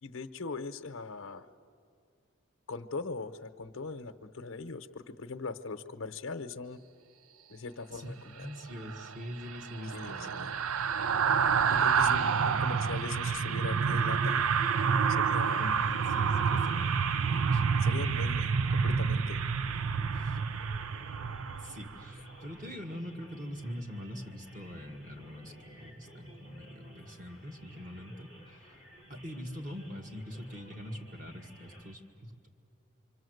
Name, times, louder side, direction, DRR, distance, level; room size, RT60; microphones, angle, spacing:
voice 1, 0.0-1.5 2.7-6.8 7.5-8.5 9.9-10.5 11.7-14.5 15.2-15.7 17.8-19.4, left 4 dB, 80° left, 8 dB, 0.9 m, -40 dB
voice 2, 7.9-10.5 12.0-12.4 15.6-17.6 20.1-20.4 21.6-28.3 29.1-32.5, equal, 40° right, 3 dB, 1.8 m, -43 dB
sound 1, 8.8-22.1 22.5-22.7, right 6 dB, 85° right, 0.5 m, -28 dB
sound 2, 15.6-31.9, equal, 55° right, 3.1 m, -55 dB
26.0 x 25.0 x 7.9 m, 2.3 s
head